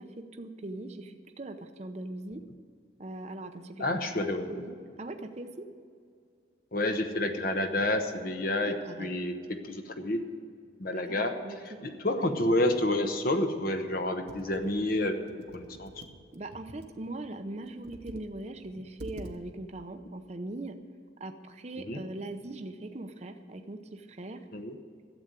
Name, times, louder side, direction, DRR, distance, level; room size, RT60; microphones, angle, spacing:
voice 1, 0.0-2.4 3.0-4.1 4.5-5.7 8.5-9.1 11.1-11.6 12.0-12.2 16.3-20.8 21.2-24.4, right 2 dB, 35° right, 7 dB, 0.7 m, -41 dB
voice 2, 3.8-4.6 6.7-10.2 10.8-11.4 11.6-15.2 15.5-15.9 21.9-22.0 24.5-24.8, left 1 dB, 50° left, 6 dB, 1.0 m, -29 dB
Computer keyboard, 14.3-17.0 17.7-18.3 18.6-18.7 19.0-19.4, right 1 dB, 60° right, 1.0 m, -47 dB
12.0 x 8.0 x 9.0 m, 2.2 s
head